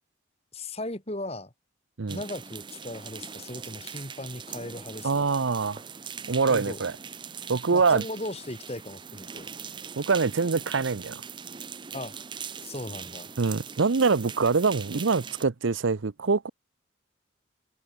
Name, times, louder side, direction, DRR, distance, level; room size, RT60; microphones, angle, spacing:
voice 1, 0.5-1.5 2.1-5.3 6.5-6.8 7.7-9.5 11.9-12.1 12.6-13.3, left 1 dB, 30° left, 2.8 m, -37 dB
sound 1, 2.1-15.4, right 6 dB, 25° right, 0.6 m, -41 dB
voice 2, 5.0-5.8 6.3-6.9 7.5-8.0 10.0-11.2 13.4-16.5, right 4 dB, 80° right, 0.7 m, -24 dB
head